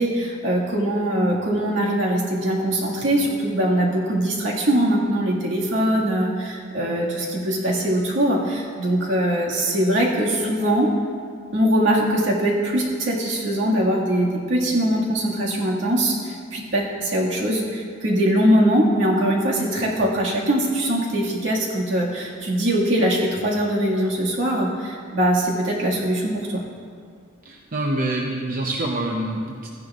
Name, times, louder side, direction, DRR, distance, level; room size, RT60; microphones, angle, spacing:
voice 1, 0.0-10.9 11.5-26.6, right 1 dB, 80° right, -4 dB, 1.9 m, -22 dB
voice 2, 27.4-29.7, right 1 dB, 50° right, 0 dB, 0.7 m, -26 dB
15.0 x 10.5 x 2.4 m, 2.1 s
head